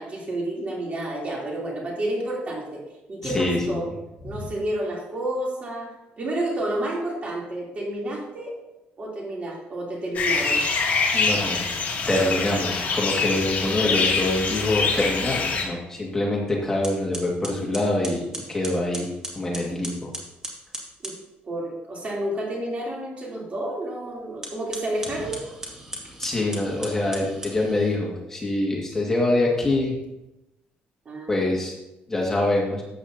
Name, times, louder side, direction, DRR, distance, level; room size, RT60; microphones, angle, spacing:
voice 1, 0.0-2.8 3.1-3.9 4.2-5.9 6.2-8.6 9.0-10.6 21.0-21.2 21.4-25.5 31.0-31.4, right 1 dB, 40° right, -3 dB, 3.3 m, -30 dB
voice 2, 3.2-3.8 4.3-4.4 11.1-11.6 12.1-19.1 19.3-20.1 26.2-29.9 31.3-31.7 32.1-32.8, left 2 dB, 15° left, -3 dB, 2.0 m, -25 dB
sound 1, 10.1-15.6, left 4 dB, 45° left, 2.5 m, -24 dB
sound 2, 16.3-16.4 16.8-21.2 24.3-28.0, right 1 dB, 15° right, 2.3 m, -37 dB
13.5 x 8.5 x 2.8 m, 0.96 s
cardioid pair, 115°, 4 cm